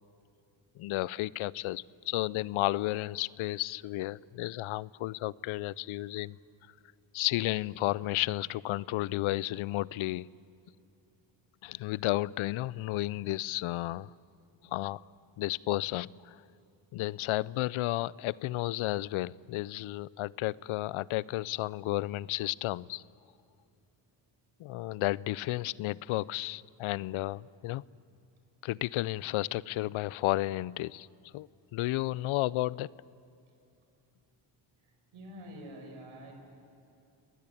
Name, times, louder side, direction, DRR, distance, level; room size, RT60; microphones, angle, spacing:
voice 1, 0.8-6.4 7.1-10.3 11.6-14.1 14.6-15.0 15.4-16.4 16.9-23.0 24.6-27.8 28.6-32.9, left 17 dB, 85° left, 23 dB, 0.6 m, -32 dB
voice 2, 34.8-36.3, equal, 80° right, 3 dB, 6.0 m, -47 dB
28.0 x 20.0 x 8.5 m, 2.7 s
cardioid pair, 75°, 48 cm